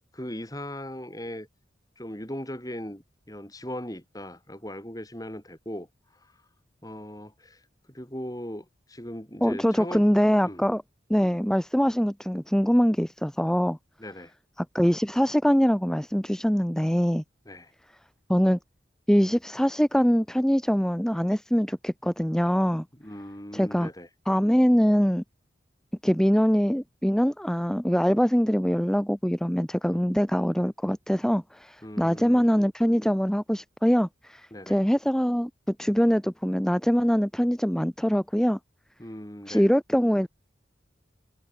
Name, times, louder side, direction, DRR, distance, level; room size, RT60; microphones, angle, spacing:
voice 1, 0.1-1.5 2.0-5.9 6.2-6.3 6.8-7.6 7.9-10.0 10.4-10.6 14.0-14.3 17.5-17.7 23.0-24.1 29.9-30.0 31.8-32.5 34.5-34.8 39.0-39.7, left 1 dB, 20° left, 5.0 m, -38 dB
voice 2, 9.4-10.8 11.1-13.8 14.6-17.2 18.3-18.6 19.1-22.8 23.5-23.9 24.3-25.2 26.0-38.6 39.5-40.3, equal, 5° left, 0.7 m, -23 dB
head